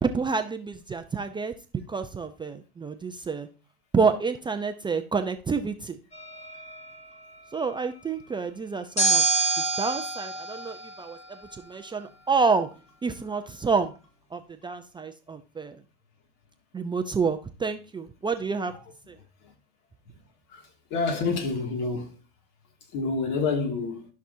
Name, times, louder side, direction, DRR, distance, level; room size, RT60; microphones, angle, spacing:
voice 1, 0.0-1.5 1.9-3.5 3.9-6.0 7.5-9.3 9.8-12.7 13.0-13.9 14.3-15.8 16.7-18.7 19.1-19.2, right 5 dB, 15° right, 0.6 m, -28 dB
sound 1, 6.1-7.0 9.0-11.6, right 4 dB, 20° left, 2.0 m, -27 dB
voice 2, 20.9-22.2 22.9-24.1, left 4 dB, 55° left, 2.4 m, -27 dB
13.0 x 6.1 x 2.7 m
supercardioid pair, 110°, 34 cm